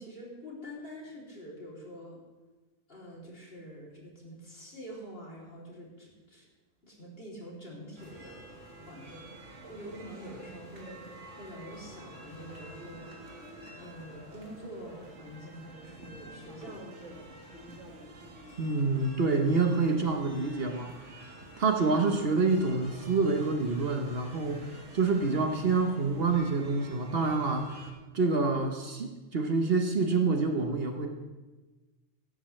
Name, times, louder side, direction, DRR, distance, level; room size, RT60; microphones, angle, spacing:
voice 1, 0.0-2.2 2.9-6.5 6.8-8.4 8.9-13.2 13.8-16.9, equal, 50° left, -4 dB, 3.3 m, -46 dB
sound 1, 8.0-27.9, right 1 dB, 70° right, 2.1 m, -49 dB
voice 2, 18.6-20.9 21.6-27.8 28.1-31.1, right 3 dB, 55° right, 4 dB, 1.2 m, -27 dB
16.5 x 12.0 x 3.2 m, 1.2 s
omnidirectional pair, 1.3 m